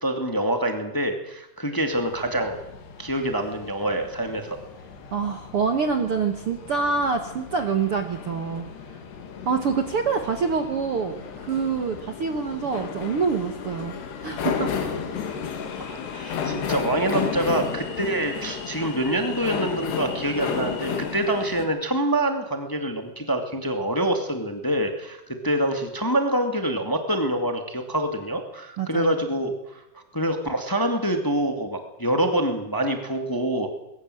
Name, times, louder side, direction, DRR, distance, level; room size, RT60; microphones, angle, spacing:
voice 1, 0.0-2.6 3.0-4.6 15.8-29.5 29.9-33.7, right 1 dB, 10° left, 5 dB, 0.9 m, -26 dB
sound 1, 1.9-21.7, left 7 dB, 85° left, 4.3 m, -33 dB
voice 2, 5.1-9.0 9.4-13.9 14.2-14.7 28.8-29.1, right 5 dB, 60° right, 6 dB, 1.5 m, -26 dB
21.5 x 19.0 x 7.8 m, 0.89 s
omnidirectional pair, 4.6 m